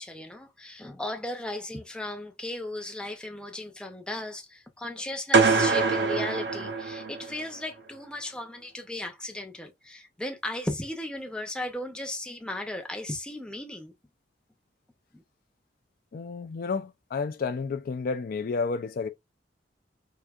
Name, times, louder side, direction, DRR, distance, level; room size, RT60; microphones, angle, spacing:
voice 1, 0.0-13.9 15.1-15.2, left 1 dB, 5° left, 0.6 m, -36 dB
sound 1, 5.3-7.4, right 4 dB, 65° right, 0.7 m, -24 dB
voice 2, 16.1-19.1, left 4 dB, 55° left, 0.4 m, -31 dB
4.6 x 2.6 x 2.3 m
head